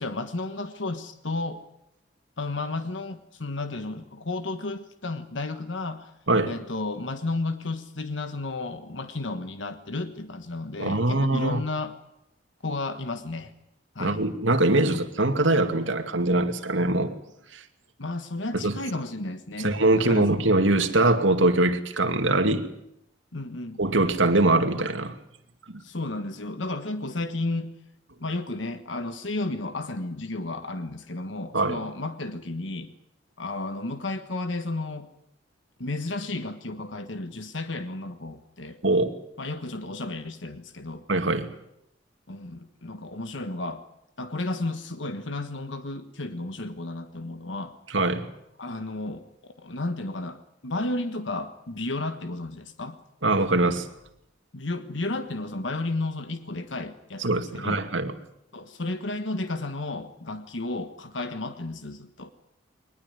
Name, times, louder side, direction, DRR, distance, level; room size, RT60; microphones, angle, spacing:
voice 1, 0.0-1.6 2.4-6.1 6.5-11.9 12.6-13.5 13.9-14.2 18.0-20.3 23.3-23.8 25.8-27.7 28.2-32.9 33.4-35.1 35.8-38.8 39.4-41.0 42.3-43.8 44.2-47.7 48.6-53.0 54.5-57.8 58.5-62.3, left 2 dB, 75° left, 9 dB, 1.5 m, -33 dB
voice 2, 10.8-11.6 14.0-17.2 17.5-17.6 18.5-18.8 19.6-22.6 23.8-25.1 25.7-25.8 31.5-31.8 38.8-39.1 41.1-41.5 47.9-48.3 53.2-53.9 57.2-58.1, right 2 dB, 85° right, 7 dB, 2.4 m, -23 dB
22.0 x 20.5 x 9.6 m, 0.79 s
head